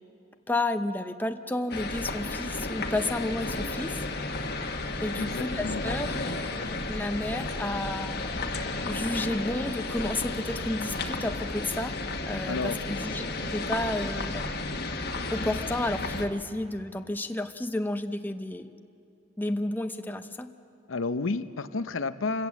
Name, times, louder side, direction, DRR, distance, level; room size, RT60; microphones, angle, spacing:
voice 1, 0.5-4.0 4.3-4.5 5.0-6.2 6.9-8.3 8.8-12.0 12.3-14.5 15.3-18.8 19.4-20.5, left 1 dB, 10° left, 7 dB, 0.6 m, -31 dB
sound 1, 1.7-16.3, left 2 dB, 50° left, 1.3 m, -33 dB
voice 2, 5.1-5.8 12.5-12.8 20.9-22.5, left 3 dB, 85° left, 11 dB, 0.7 m, -31 dB
28.0 x 17.0 x 7.3 m, 2.7 s
head